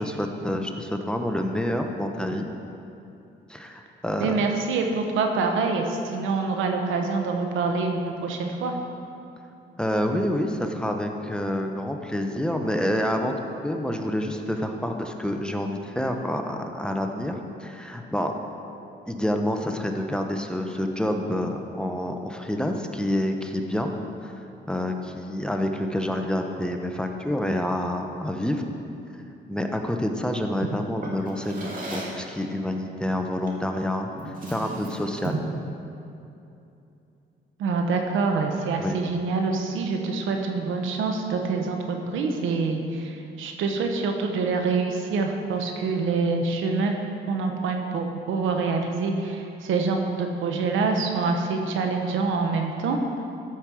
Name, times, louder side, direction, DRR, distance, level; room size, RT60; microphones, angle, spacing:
voice 1, 0.0-2.5 3.5-4.5 9.8-13.3 13.6-18.3 19.1-23.9 24.2-28.6 29.1-29.2 29.5-35.4 38.8-39.0, left 1 dB, 5° left, 4 dB, 0.9 m, -28 dB
voice 2, 4.2-8.8 30.6-30.7 37.6-46.9 47.3-53.0, right 4 dB, 85° right, 3 dB, 1.2 m, -26 dB
Drawer open or close, 31.0-32.3 33.5-33.7 34.1-35.6, right 2 dB, 45° right, 2.1 m, -35 dB
13.5 x 5.4 x 6.3 m, 2.8 s
cardioid pair, 90°, 20 cm